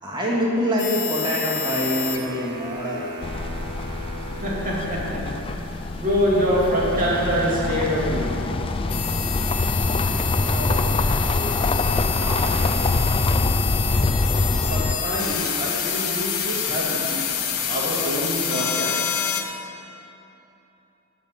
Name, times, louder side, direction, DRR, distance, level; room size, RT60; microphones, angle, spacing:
voice 1, 0.0-3.1 9.9-11.7 12.1-12.9, equal, 20° right, -4 dB, 2.1 m, -27 dB
sound 1, 0.8-19.4, left 8 dB, 65° left, 1.1 m, -29 dB
sound 2, 1.7-5.0, right 1 dB, 55° right, 1.3 m, -37 dB
sound 3, 3.2-15.0, left 3 dB, 25° left, 0.4 m, -24 dB
voice 2, 4.3-5.6 5.9-8.6 14.5-17.4 17.7-19.2, equal, 40° right, -5 dB, 2.8 m, -25 dB
13.5 x 5.3 x 8.5 m, 3.0 s
head